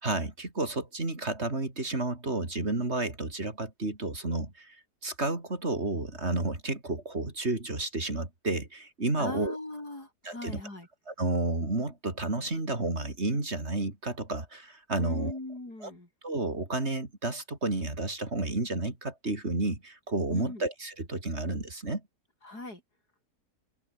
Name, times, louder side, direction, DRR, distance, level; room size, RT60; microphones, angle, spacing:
voice 1, 0.0-4.8 5.0-9.6 10.2-10.6 11.1-15.3 15.8-15.9 16.2-22.0, right 2 dB, 40° right, 4.3 m, -31 dB
voice 2, 9.2-10.9 15.0-16.1 20.3-20.7 22.4-22.8, left 2 dB, 65° left, 7.8 m, -39 dB
omnidirectional pair, 1.8 m